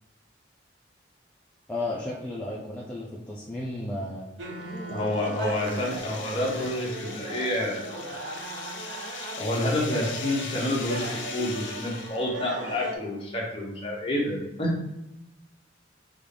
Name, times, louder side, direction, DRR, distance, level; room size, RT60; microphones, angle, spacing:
voice 1, 1.7-4.3 5.7-5.8, left 1 dB, 5° left, -7 dB, 0.5 m, -33 dB
sound 1, 4.4-12.9, right 2 dB, 70° right, 0.6 m, -37 dB
sound 2, 4.6-12.4, left 5 dB, 85° left, 0.7 m, -40 dB
voice 2, 4.9-8.1 9.4-14.8, left 1 dB, 30° left, -3 dB, 1.0 m, -29 dB
5.4 x 2.5 x 3.4 m, 0.96 s
head